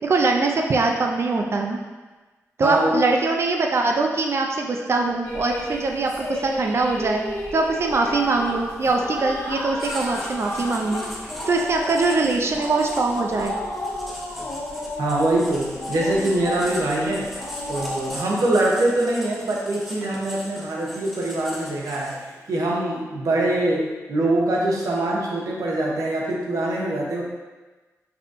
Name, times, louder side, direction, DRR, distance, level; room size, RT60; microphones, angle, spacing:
voice 1, 0.0-1.8 2.6-7.2 7.5-11.1 11.5-13.6, right 3 dB, 50° right, 2 dB, 0.5 m, -22 dB
voice 2, 2.6-3.0 15.0-27.2, right 1 dB, 85° right, -3 dB, 0.8 m, -23 dB
sound 1, 5.2-18.2, left 1 dB, 80° left, 1.1 m, -32 dB
Writing, 9.8-22.4, equal, ahead, 0.7 m, -39 dB
5.4 x 2.7 x 2.5 m, 1.2 s
wide cardioid pair, 125°, 6 cm